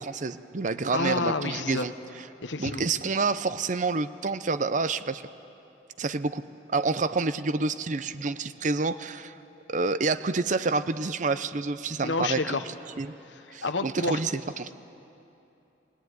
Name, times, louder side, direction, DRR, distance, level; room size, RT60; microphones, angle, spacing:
voice 1, 0.0-1.9 2.6-5.2 6.0-6.4 6.7-9.3 9.7-12.6 13.0-13.1 13.5-14.7, right 3 dB, 45° right, 13 dB, 0.6 m, -28 dB
voice 2, 0.9-1.9 2.4-2.8 12.0-12.6 13.3-14.2, left 3 dB, 85° left, 9 dB, 1.1 m, -29 dB
21.5 x 19.5 x 9.4 m, 2.9 s
head